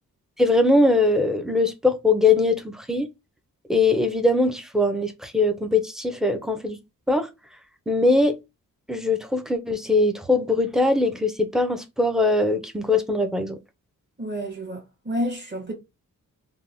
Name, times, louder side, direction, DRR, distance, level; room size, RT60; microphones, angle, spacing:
voice 1, 0.4-3.1 3.7-6.8 7.1-7.3 7.9-8.4 8.9-13.6, left 2 dB, ahead, 0.5 m, -21 dB
voice 2, 14.2-15.7, equal, 35° right, 1.5 m, -30 dB
3.4 x 2.2 x 2.6 m
wide cardioid pair, 125°, 33 cm